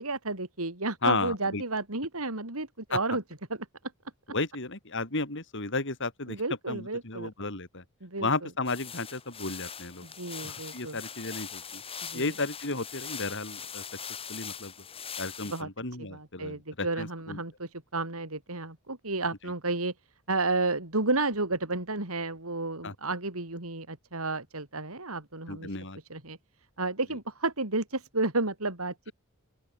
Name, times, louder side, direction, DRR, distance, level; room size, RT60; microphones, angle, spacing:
voice 1, 0.0-3.2 6.3-7.3 8.0-8.3 10.0-11.0 12.0-12.3 15.5-15.7 16.0-19.9 20.3-25.7 26.1-26.4 26.8-29.1, right 3 dB, 75° right, 4.0 m, -32 dB
voice 2, 1.0-1.6 2.9-3.0 4.3-6.4 6.7-7.8 8.2-10.1 10.4-11.8 12.1-13.8 14.3-14.7 15.2-17.4 22.8-22.9 25.5-26.0, left 3 dB, 55° left, 4.5 m, -33 dB
sound 1, 8.7-15.6, left 7 dB, 25° left, 2.9 m, -41 dB
open air
head